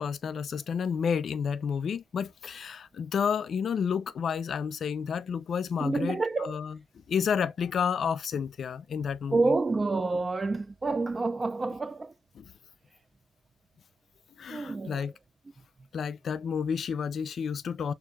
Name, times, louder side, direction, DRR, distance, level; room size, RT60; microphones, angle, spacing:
voice 1, 0.0-6.8 7.1-9.5 12.3-12.5 14.4-15.1 15.9-17.9, left 7 dB, 55° left, 0.5 m, -30 dB
voice 2, 5.8-6.6 9.3-12.1 14.5-15.1, right 3 dB, 25° right, 0.3 m, -28 dB
6.4 x 2.6 x 2.3 m
cardioid pair, 90°, 0 cm